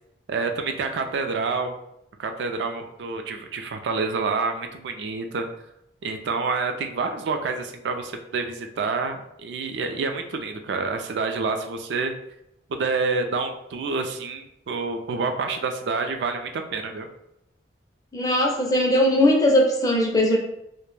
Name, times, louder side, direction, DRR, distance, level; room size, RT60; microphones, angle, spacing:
voice 1, 0.3-1.7 2.2-5.5 6.0-12.1 12.7-17.1, right 4 dB, 60° right, 6 dB, 0.3 m, -28 dB
voice 2, 18.1-20.4, left 1 dB, 20° left, 0 dB, 0.4 m, -19 dB
2.1 x 2.1 x 3.0 m, 0.80 s
head